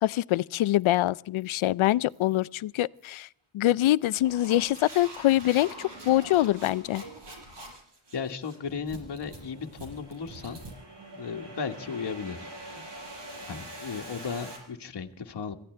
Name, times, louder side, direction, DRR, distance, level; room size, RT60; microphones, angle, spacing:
voice 1, 0.0-3.3 3.5-7.0, left 14 dB, 80° left, 0.5 m, -24 dB
sound 1, 0.8-1.0 1.4-1.6 2.1-2.4 3.0-3.2 3.9-14.6, right 1 dB, 60° right, 6.2 m, -44 dB
voice 2, 8.1-10.6 11.1-12.8 13.5-15.5, left 5 dB, 55° left, 1.6 m, -35 dB
26.0 x 16.0 x 3.3 m
wide cardioid pair, 105°, 47 cm